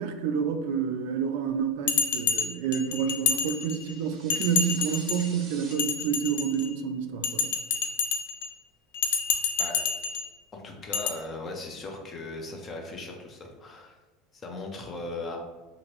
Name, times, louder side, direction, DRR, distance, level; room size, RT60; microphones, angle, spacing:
voice 1, 0.0-7.5, right 7 dB, 70° right, 7 dB, 0.3 m, -29 dB
Bell, 1.9-3.9 4.3-5.3 5.7-6.7 7.2-8.5 8.9-10.3 10.9-11.1, left 6 dB, 85° left, 0.3 m, -28 dB
sound 1, 3.6-5.7, right 4 dB, 35° right, 0.7 m, -48 dB
voice 2, 9.6-9.9 10.5-14.0 14.3-15.4, left 2 dB, 25° left, 1 dB, 0.5 m, -38 dB
2.9 x 2.5 x 3.0 m, 1.2 s
supercardioid pair, 155°, 0 cm